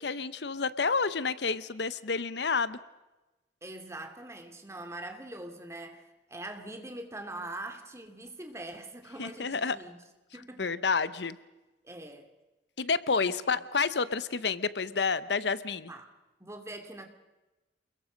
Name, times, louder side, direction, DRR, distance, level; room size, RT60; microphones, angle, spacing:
voice 1, 0.0-2.8 9.2-9.8 10.6-11.4 12.8-15.9, left 5 dB, 75° left, 16 dB, 0.9 m, -29 dB
voice 2, 3.6-10.0 10.3-10.8 11.8-12.3 13.2-13.6 15.9-16.1 16.4-17.1, right 1 dB, 15° right, 5 dB, 2.6 m, -43 dB
29.0 x 21.5 x 5.2 m, 1.1 s
head